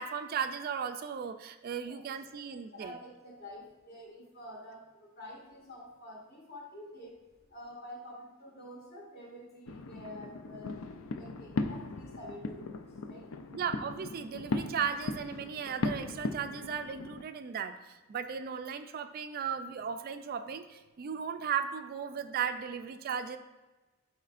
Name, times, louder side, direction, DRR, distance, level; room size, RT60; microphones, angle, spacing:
voice 1, 0.0-3.0 13.5-23.4, right 7 dB, 45° right, 9 dB, 0.3 m, -36 dB
voice 2, 1.9-13.3, equal, 50° left, -4 dB, 2.0 m, -49 dB
sound 1, 9.6-17.2, left 3 dB, 70° left, 0.5 m, -38 dB
11.5 x 4.3 x 2.5 m, 1.1 s
head